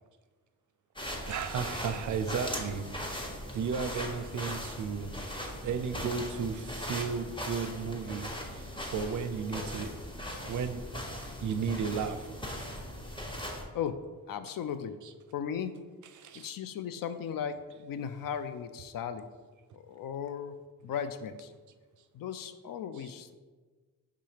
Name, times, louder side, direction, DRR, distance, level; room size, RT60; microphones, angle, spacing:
sound 1, 1.0-13.6, equal, 10° left, 1.1 m, -39 dB
voice 1, 1.3-2.9 3.5-5.1 5.6-10.0 10.4-10.8 11.4-12.3 16.1-16.5 23.0-23.1, right 6 dB, 50° right, 9 dB, 0.5 m, -34 dB
voice 2, 14.3-14.9 15.3-15.8 16.3-19.2 19.7-20.6 20.8-21.5 22.1-23.4, left 8 dB, 60° left, 10 dB, 0.5 m, -36 dB
4.8 x 3.6 x 2.9 m, 1.4 s
supercardioid pair, 50°, 39 cm